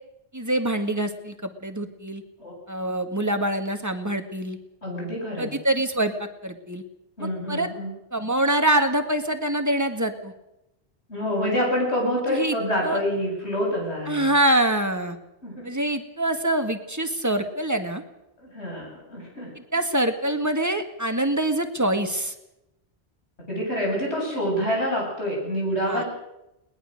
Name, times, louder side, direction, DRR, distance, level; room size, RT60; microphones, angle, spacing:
voice 1, 0.3-2.2 2.7-4.6 5.4-6.8 7.2-7.7 8.1-10.3 12.3-12.6 12.8-13.0 14.1-15.2 15.6-18.0 19.7-22.3 25.9-26.0, right 1 dB, 15° right, 7 dB, 1.8 m, -25 dB
voice 2, 4.8-5.6 7.2-8.0 11.1-14.3 15.4-15.7 18.4-19.8 23.5-26.1, equal, 80° left, -1 dB, 8.5 m, -27 dB
21.5 x 20.0 x 6.6 m, 0.89 s
omnidirectional pair, 1.1 m